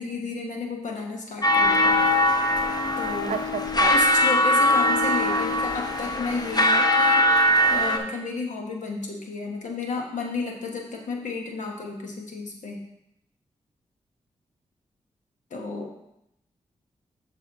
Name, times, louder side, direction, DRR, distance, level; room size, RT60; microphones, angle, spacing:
voice 1, 0.0-2.0 3.0-3.3 3.8-7.3 7.7-12.8 15.5-15.9, left 3 dB, 75° left, 0 dB, 1.4 m, -32 dB
sound 1, 1.4-8.0, equal, 30° left, 1.0 m, -21 dB
voice 2, 3.3-3.9, right 6 dB, 70° right, 9 dB, 0.5 m, -31 dB
7.1 x 5.7 x 3.6 m, 0.82 s
supercardioid pair, 45°, 13 cm